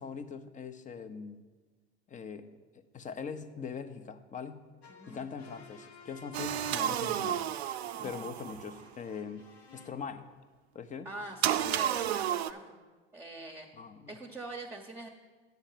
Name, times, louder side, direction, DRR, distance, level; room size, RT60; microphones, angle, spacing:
voice 1, 0.0-1.4 2.1-4.7 5.1-7.5 8.0-9.5 9.7-10.2 10.7-11.1 13.7-14.2, left 6 dB, 25° left, 10 dB, 0.7 m, -42 dB
sound 1, 4.8-9.9, left 4 dB, 85° left, 1.3 m, -55 dB
voice 2, 4.9-5.3 6.8-6.9 8.0-8.1 11.0-12.8 13.1-13.7 14.1-15.1, right 2 dB, 10° right, 0 dB, 0.9 m, -43 dB
sound 2, 6.3-8.8 11.4-12.5, right 10 dB, 85° right, 0.5 m, -31 dB
9.2 x 6.3 x 5.7 m, 1.3 s
hypercardioid pair, 85°, 31 cm